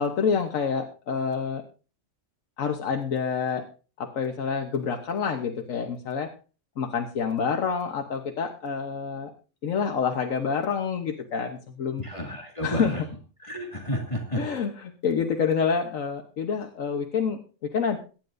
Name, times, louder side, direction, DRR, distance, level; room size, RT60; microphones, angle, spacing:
voice 1, 0.0-1.6 2.6-3.6 4.0-6.3 6.8-9.3 9.6-12.0 12.6-12.9 14.4-14.7 15.0-18.0, left 6 dB, 75° left, 4 dB, 1.5 m, -27 dB
voice 2, 12.0-13.0 13.4-14.4, equal, 25° left, 0 dB, 2.3 m, -31 dB
22.5 x 10.5 x 2.6 m, 0.36 s
omnidirectional pair, 1.4 m